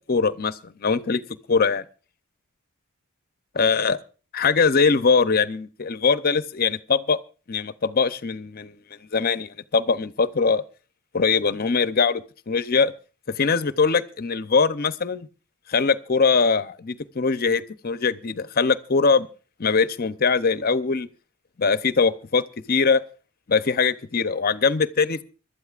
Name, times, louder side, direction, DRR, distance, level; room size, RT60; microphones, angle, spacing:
voice 1, 0.1-1.2 1.5-1.8 3.5-4.0 4.3-7.2 7.5-8.8 9.1-10.6 11.1-12.9 13.3-15.3 15.7-19.3 19.6-21.1 21.6-23.0 23.5-25.2, left 5 dB, 45° left, 0.6 m, -22 dB
25.0 x 12.5 x 2.4 m
head